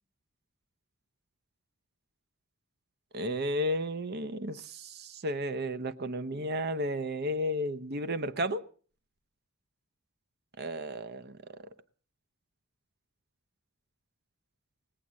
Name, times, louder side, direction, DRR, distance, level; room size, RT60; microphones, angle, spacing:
voice 1, 3.1-8.6 10.6-11.4, equal, 45° right, 13 dB, 0.8 m, -33 dB
19.5 x 8.4 x 7.5 m, 0.43 s
head